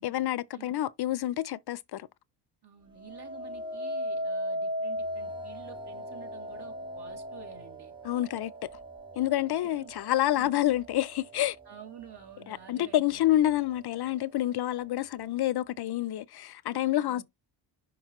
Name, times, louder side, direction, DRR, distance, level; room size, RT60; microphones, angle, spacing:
voice 1, 0.0-2.1 8.0-8.7 9.2-11.6 12.5-17.2, left 13 dB, 55° left, 0.5 m, -28 dB
voice 2, 2.6-7.9 9.5-9.9 10.3-10.7 11.7-13.2 17.0-17.2, right 8 dB, 55° right, 2.7 m, -50 dB
sound 1, 3.0-12.1 12.7-13.1, equal, 10° right, 1.5 m, -38 dB
5.8 x 5.3 x 3.0 m
cardioid pair, 75°, 48 cm